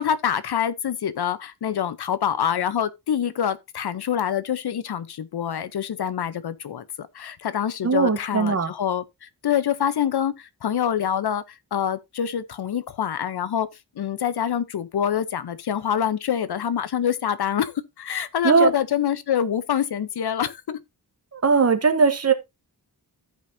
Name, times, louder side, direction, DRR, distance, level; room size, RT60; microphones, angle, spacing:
voice 1, 0.0-13.7 14.0-20.8, left 9 dB, 75° left, 0.8 m, -26 dB
voice 2, 7.8-8.7 18.4-18.7 21.3-22.3, right 5 dB, 40° right, 1.0 m, -19 dB
14.5 x 5.2 x 2.7 m
wide cardioid pair, 155°, 39 cm